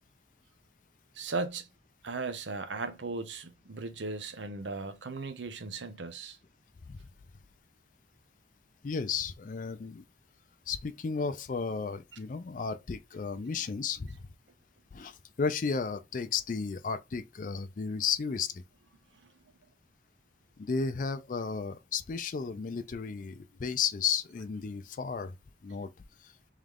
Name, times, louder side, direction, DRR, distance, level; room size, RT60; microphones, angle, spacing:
voice 1, 1.1-1.7 2.0-6.4, right 3 dB, 85° right, 0.8 m, -37 dB
voice 2, 8.8-10.0 10.7-14.2 14.9-18.6 20.6-25.3 25.6-25.9, left 5 dB, 45° left, 0.4 m, -33 dB
3.7 x 3.2 x 3.4 m
head